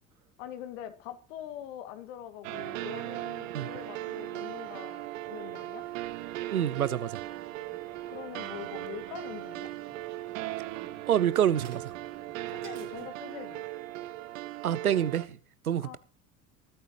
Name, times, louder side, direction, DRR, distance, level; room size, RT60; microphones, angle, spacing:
voice 1, 0.4-5.9 8.1-9.7 12.5-13.6 15.8-16.0, left 11 dB, 60° left, 2.4 m, -43 dB
sound 1, 2.4-15.3, right 16 dB, 65° right, 1.2 m, -38 dB
sound 2, 5.8-13.1, right 8 dB, 40° right, 3.2 m, -53 dB
voice 2, 6.5-7.2 11.1-11.8 14.6-15.4 15.7-16.0, right 10 dB, 80° right, 0.9 m, -27 dB
20.0 x 13.0 x 3.1 m
figure-of-eight pair, 70°, 42 cm